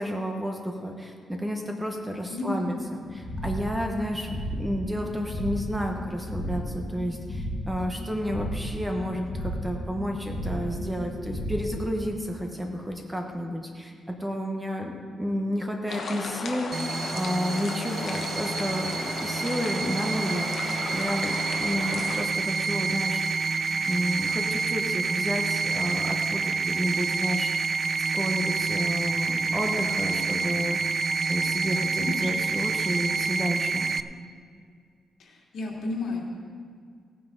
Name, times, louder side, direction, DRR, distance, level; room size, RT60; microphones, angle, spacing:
voice 1, 0.0-23.2 23.9-27.5 28.1-31.0 31.3-33.9, equal, 10° right, 2 dB, 1.2 m, -31 dB
voice 2, 2.3-2.8 32.0-32.3 35.2-36.3, left 3 dB, 70° left, -2 dB, 2.7 m, -32 dB
sound 1, 3.0-12.0, equal, 10° left, 2.0 m, -34 dB
sound 2, 15.9-22.3, left 4 dB, 55° left, 1.1 m, -35 dB
sound 3, 16.7-34.0, right 4 dB, 35° right, 0.4 m, -28 dB
17.0 x 9.5 x 4.0 m, 2.1 s
cardioid pair, 140°, 0 cm